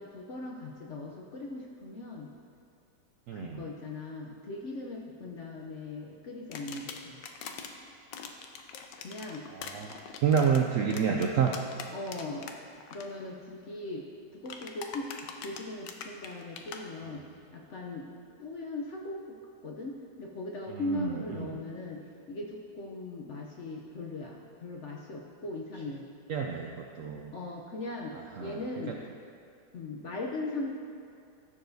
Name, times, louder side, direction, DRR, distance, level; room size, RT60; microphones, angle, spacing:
voice 1, 0.0-2.3 3.3-7.2 9.0-9.5 11.9-12.5 12.9-15.1 15.4-17.2 17.5-18.1 18.4-22.0 22.3-26.1 27.3-28.1 28.4-29.0 29.7-30.8, left 2 dB, 60° left, -1 dB, 0.8 m, -39 dB
voice 2, 3.3-3.6 9.5-10.0 10.2-11.5 20.7-21.5 26.3-27.3 28.4-28.6, right 7 dB, 75° right, 1 dB, 0.7 m, -29 dB
sound 1, 6.5-7.7 8.1-12.5 12.8-13.0 14.5-16.8, left 7 dB, 85° left, 1.3 m, -42 dB
14.5 x 6.8 x 2.7 m, 2.4 s
omnidirectional pair, 1.9 m